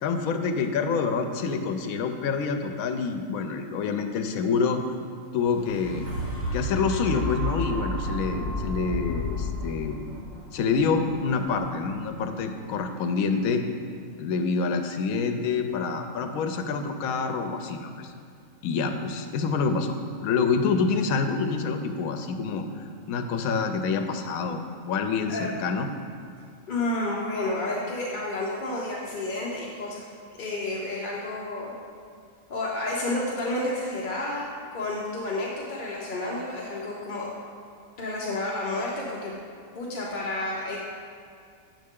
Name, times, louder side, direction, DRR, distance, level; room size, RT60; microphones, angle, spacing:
voice 1, 0.0-4.8 5.3-6.1 6.5-10.0 10.5-13.6 14.2-18.1 18.6-22.7 23.1-24.6 24.9-25.9, left 5 dB, 85° left, 6 dB, 1.0 m, -27 dB
sound 1, 5.3-13.3 13.9-14.0, equal, 85° right, 2.1 m, -33 dB
voice 2, 26.7-30.0 30.4-31.7 32.5-37.3 38.0-39.3 39.7-40.8, left 2 dB, 45° left, -4 dB, 0.7 m, -30 dB
7.6 x 5.4 x 3.6 m, 2.3 s
omnidirectional pair, 1.4 m